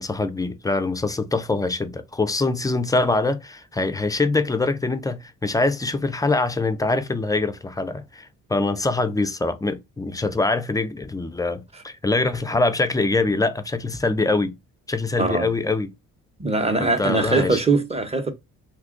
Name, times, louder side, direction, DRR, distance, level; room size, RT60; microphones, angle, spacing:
voice 1, 0.0-14.6 14.9-15.9 16.8-17.6, left 3 dB, 10° left, 0.4 m, -24 dB
voice 2, 15.2-15.5 16.4-18.3, right 3 dB, 20° right, 0.9 m, -21 dB
2.8 x 2.3 x 3.7 m
cardioid pair, 90°, 30 cm